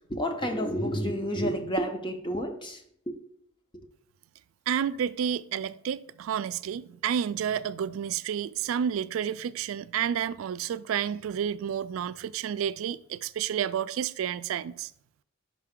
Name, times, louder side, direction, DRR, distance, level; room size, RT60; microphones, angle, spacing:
voice 1, 0.0-3.1, equal, 25° left, 0.7 m, -30 dB
voice 2, 4.7-14.9, right 8 dB, 75° right, 0.3 m, -30 dB
5.7 x 5.4 x 3.6 m
head